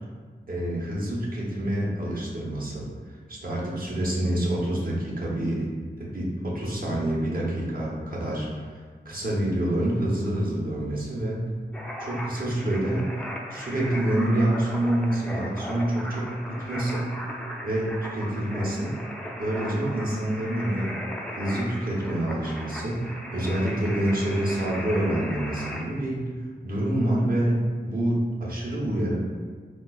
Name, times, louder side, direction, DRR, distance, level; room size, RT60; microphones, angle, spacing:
voice 1, 0.5-5.7 6.0-8.7 9.0-11.4 12.0-13.1 13.5-17.2 17.6-18.9 19.4-21.0 21.3-26.3 26.6-29.2, right 1 dB, 50° right, -5 dB, 0.8 m, -27 dB
sound 1, 11.7-25.8, equal, 5° left, 0.3 m, -37 dB
4.8 x 2.3 x 2.2 m, 1.5 s
wide cardioid pair, 95°, 19 cm